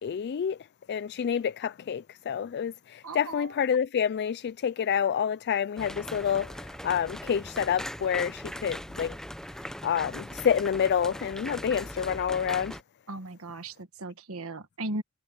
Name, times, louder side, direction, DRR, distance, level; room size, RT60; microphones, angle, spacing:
voice 1, 0.0-0.6 0.9-9.2 9.6-12.8, left 8 dB, 50° left, 0.3 m, -28 dB
voice 2, 3.0-3.6 13.1-15.0, right 2 dB, 70° right, 1.5 m, -37 dB
sound 1, 5.8-12.8, equal, 5° left, 0.9 m, -40 dB
head